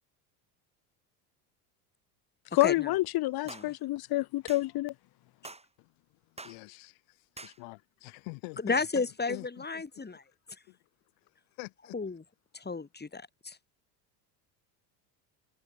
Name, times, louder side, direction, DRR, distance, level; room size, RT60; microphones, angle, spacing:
voice 1, 2.5-4.9, left 17 dB, 50° left, 1.0 m, -28 dB
sound 1, 3.5-3.7 4.5-4.7 5.4-5.7 6.4-6.6 7.4-7.6, right 2 dB, 10° right, 4.6 m, -45 dB
voice 2, 5.8-9.8 10.1-10.2 10.7-10.8 11.2-12.0, left 32 dB, 75° left, 7.2 m, -46 dB
voice 3, 8.6-10.2 11.9-12.2 12.5-13.6, left 4 dB, 20° left, 5.9 m, -33 dB
supercardioid pair, 85°, 49 cm